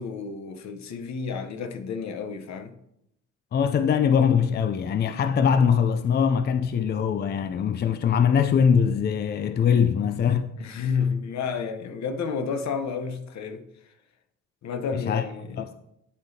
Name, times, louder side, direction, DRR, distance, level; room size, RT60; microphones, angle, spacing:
voice 1, 0.0-2.7 10.6-13.6 14.6-15.7, left 5 dB, 65° left, 0.9 m, -31 dB
voice 2, 3.5-10.5 14.9-15.2 15.6-15.7, left 7 dB, 35° left, 0.4 m, -22 dB
11.5 x 5.1 x 2.7 m
cardioid pair, 90°, 30 cm